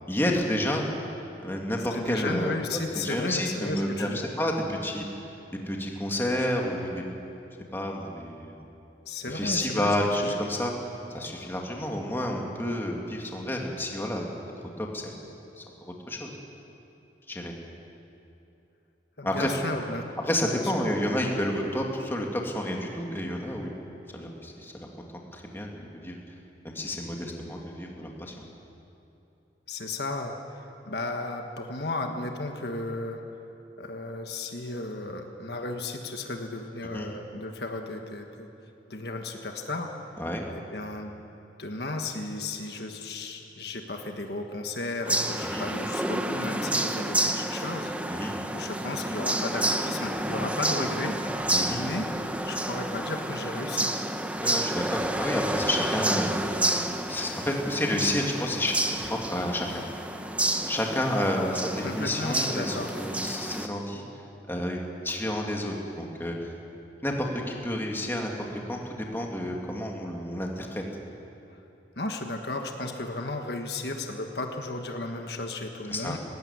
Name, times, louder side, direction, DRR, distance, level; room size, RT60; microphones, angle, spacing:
voice 1, 0.1-0.9 1.4-2.5 3.0-4.1 4.4-5.0 5.7-7.0 7.7-8.6 9.3-10.7 11.1-14.3 14.8-15.1 15.6-16.3 17.3-17.5 19.2-19.5 20.2-23.7 24.1-24.9 25.3-26.2 26.6-28.3 36.9-37.1 40.2-40.4 45.4-45.6 48.1-48.3 51.5-51.8 54.4-56.4 57.1-59.7 60.7-64.0 64.5-66.3 67.0-70.8 75.9-76.2, left 1 dB, 15° left, 0 dB, 2.2 m, -30 dB
voice 2, 1.9-4.2 9.0-10.4 19.2-20.1 20.5-20.7 29.7-33.2 33.8-38.5 38.9-39.9 40.5-41.2 41.6-47.9 48.5-51.2 51.6-53.9 61.8-62.9 72.0-76.2, left 2 dB, 65° left, 4 dB, 1.5 m, -34 dB
sound 1, 45.1-63.7, right 1 dB, 10° right, 0.9 m, -30 dB
19.0 x 16.5 x 9.6 m, 2.9 s
head